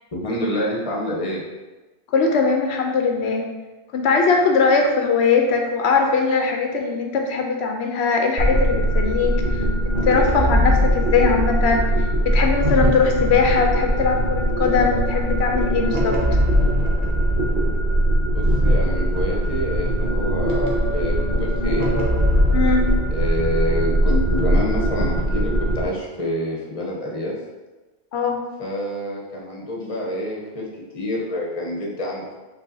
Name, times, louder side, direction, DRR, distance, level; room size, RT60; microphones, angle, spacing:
voice 1, 0.1-1.4 18.3-21.9 23.1-27.3 28.6-30.7 30.9-32.4, left 1 dB, 35° left, -2 dB, 0.9 m, -27 dB
voice 2, 2.1-3.4 3.9-9.4 10.0-11.9 12.2-16.2 22.5-22.9 28.1-28.4, left 4 dB, 85° left, 3 dB, 0.9 m, -20 dB
sound 1, 8.4-25.8, right 1 dB, 55° right, 1.0 m, -20 dB
5.4 x 3.7 x 2.7 m, 1.2 s
omnidirectional pair, 1.1 m